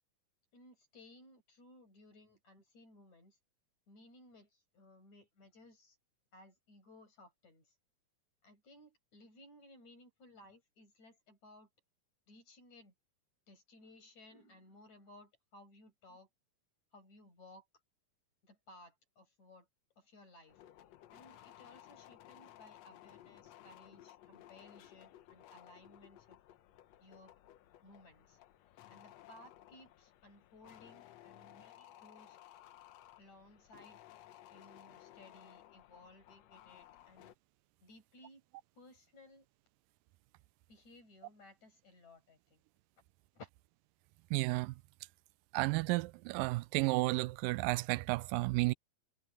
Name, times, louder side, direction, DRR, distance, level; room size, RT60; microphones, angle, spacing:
voice 1, 0.5-3.4 3.9-6.0 6.3-7.7 8.4-11.7 12.3-12.9 13.5-16.3 16.9-17.7 18.4-19.7 20.0-20.6 21.1-26.4 27.0-27.3 27.8-28.4 28.9-32.4 33.2-34.0 34.5-37.3 37.8-38.4 38.7-39.5 40.7-42.6 43.3-43.5, left 1 dB, 50° left, 9.4 m, -59 dB
sound 1, 20.5-37.3, left 13 dB, 75° left, 1.6 m, -58 dB
voice 2, 44.3-44.8 45.5-48.7, right 22 dB, 80° right, 2.1 m, -32 dB
omnidirectional pair, 4.1 m